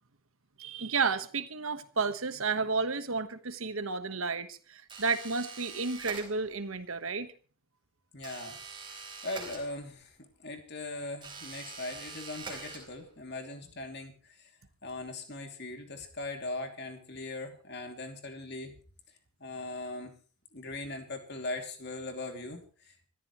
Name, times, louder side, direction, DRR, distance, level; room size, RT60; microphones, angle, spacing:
voice 1, 0.6-7.3, right 4 dB, 80° right, 1.3 m, -32 dB
sound 1, 4.9-6.7 8.2-10.1 11.2-13.2, right 4 dB, 20° right, 4.2 m, -45 dB
voice 2, 8.1-8.6 8.9-14.5 14.8-18.8 19.4-20.2 20.5-23.1, left 2 dB, 50° left, 2.7 m, -40 dB
25.5 x 13.5 x 3.1 m
head